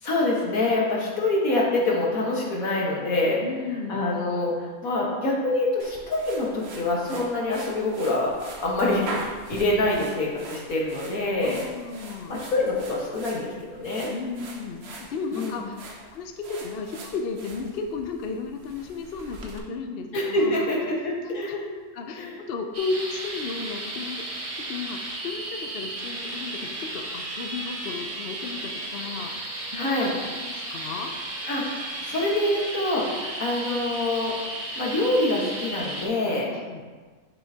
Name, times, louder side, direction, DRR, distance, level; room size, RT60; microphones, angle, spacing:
voice 1, 0.0-3.4 3.9-8.3 8.6-11.6 12.3-14.1 15.3-15.6 20.1-21.7 22.2-22.4 29.8-30.1 31.5-34.3 34.8-36.5, left 2 dB, 85° left, -3 dB, 1.9 m, -25 dB
voice 2, 3.4-4.0 11.4-12.3 14.1-20.7 21.2-21.6 21.9-24.2 24.6-29.9 30.4-31.1 36.5-36.8, left 4 dB, 55° left, 4 dB, 0.7 m, -34 dB
sound 1, 5.8-19.6, right 2 dB, 55° right, 1.1 m, -42 dB
sound 2, 22.7-36.1, right 2 dB, 30° right, 0.9 m, -34 dB
9.8 x 5.5 x 2.8 m, 1.4 s
omnidirectional pair, 1.4 m